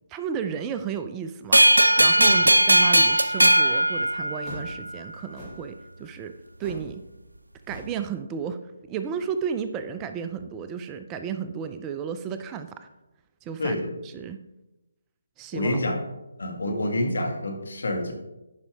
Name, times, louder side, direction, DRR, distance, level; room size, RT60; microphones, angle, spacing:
voice 1, 0.1-6.3 6.6-7.0 7.7-8.6 8.9-12.9 13.4-13.8 14.0-14.4 15.4-15.8 16.7-16.8, right 7 dB, 20° right, 9 dB, 0.4 m, -33 dB
sound 1, 1.5-4.8, right 1 dB, 90° right, 0.4 m, -18 dB
sound 2, 4.4-4.7 5.3-5.7 6.6-6.9 7.2-7.4 7.7-8.0, equal, 5° left, 2.7 m, -40 dB
voice 2, 15.5-16.0 16.4-18.1, left 1 dB, 70° left, 2 dB, 1.7 m, -27 dB
10.5 x 5.2 x 3.5 m, 0.99 s
figure-of-eight pair, 145°, 0 cm